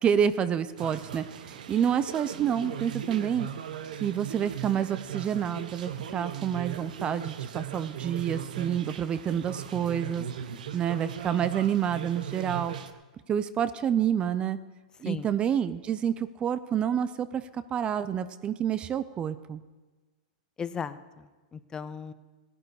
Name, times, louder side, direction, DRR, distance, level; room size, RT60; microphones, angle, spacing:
voice 1, 0.0-3.5 4.0-10.2 10.7-12.7 13.3-14.6 15.0-19.6, right 8 dB, 25° right, 14 dB, 0.5 m, -28 dB
sound 1, 0.8-12.9, right 9 dB, 80° right, 0.9 m, -38 dB
voice 2, 20.6-22.1, left 6 dB, 15° left, 13 dB, 0.6 m, -37 dB
16.5 x 11.0 x 4.8 m, 1.3 s
hypercardioid pair, 130°, 4 cm